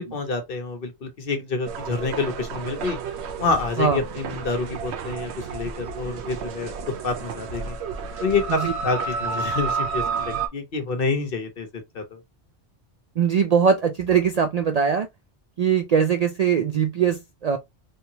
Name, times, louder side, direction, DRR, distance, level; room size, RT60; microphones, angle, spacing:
voice 1, 0.0-3.0 3.4-7.8 8.2-11.7 11.9-12.2, left 4 dB, 60° left, 1.0 m, -28 dB
sound 1, 1.7-10.5, right 5 dB, 85° right, 0.9 m, -31 dB
voice 2, 13.2-15.1 15.6-17.6, right 7 dB, 60° right, 0.4 m, -21 dB
3.3 x 2.9 x 2.7 m
omnidirectional pair, 1.1 m